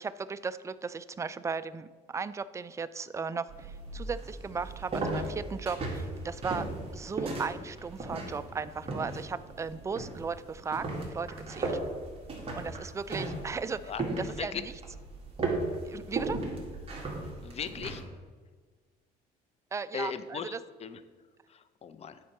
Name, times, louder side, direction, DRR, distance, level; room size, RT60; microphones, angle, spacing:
voice 1, 0.0-6.7 6.9-11.8 12.6-13.9 14.2-14.6 15.8-16.4 19.7-20.6, right 5 dB, 15° right, 14 dB, 0.3 m, -36 dB
sound 1, 3.5-18.0, right 2 dB, 35° right, 2.0 m, -36 dB
voice 2, 17.4-18.0 19.9-20.5 20.8-21.0 21.5-22.2, left 7 dB, 40° left, 12 dB, 0.6 m, -37 dB
9.3 x 4.4 x 5.9 m, 1.4 s
cardioid pair, 110°, 17 cm